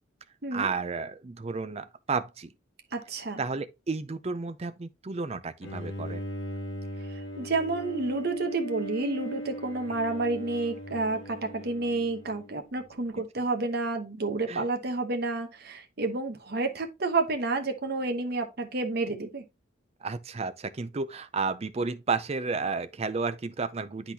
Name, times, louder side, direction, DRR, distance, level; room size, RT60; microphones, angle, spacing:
voice 1, 0.5-2.5 3.4-6.3 9.9-10.0 14.5-14.6 20.0-24.1, right 4 dB, 30° right, 0.4 m, -32 dB
voice 2, 2.9-3.4 7.1-19.4, right 3 dB, 50° right, 1.0 m, -30 dB
Bowed string instrument, 5.6-12.9, equal, 70° left, 1.6 m, -38 dB
10.0 x 4.0 x 2.8 m
head